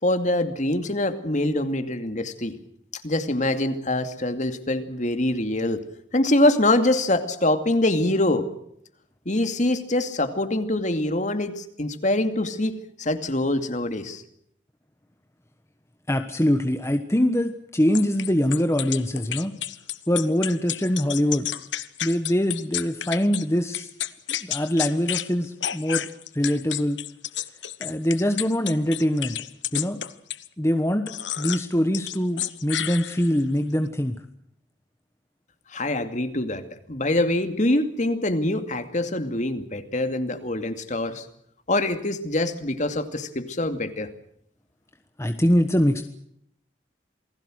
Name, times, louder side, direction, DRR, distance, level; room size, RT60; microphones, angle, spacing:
voice 1, 0.0-2.6 3.0-5.8 6.1-8.5 9.3-14.2 35.7-41.3 41.7-44.1, left 1 dB, 40° left, 8 dB, 2.4 m, -24 dB
voice 2, 16.1-19.5 20.1-21.5 22.0-23.9 24.3-26.1 26.3-27.0 27.8-29.4 29.7-30.0 30.6-34.2 45.2-46.0, equal, 15° left, 7 dB, 1.2 m, -23 dB
sound 1, 17.9-23.4 23.7-25.3 25.6-30.5 31.1-31.7 31.9-33.4, left 12 dB, 75° left, 1.2 m, -31 dB
28.5 x 20.0 x 6.4 m, 0.72 s
head